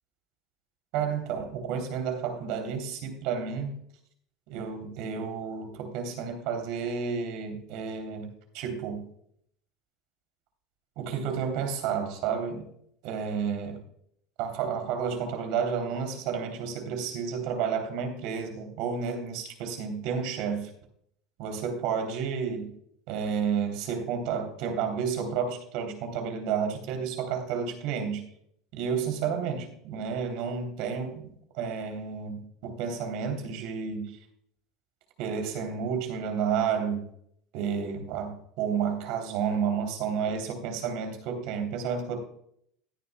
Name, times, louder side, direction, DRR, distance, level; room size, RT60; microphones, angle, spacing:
voice 1, 0.9-3.7 4.5-9.1 11.0-12.7 13.0-13.8 14.4-20.7 21.4-22.7 23.1-28.3 28.7-34.1 35.2-37.0 37.5-42.2, right 6 dB, 65° right, 5 dB, 3.0 m, -31 dB
17.0 x 9.5 x 2.2 m, 0.67 s
hypercardioid pair, 90°, 0 cm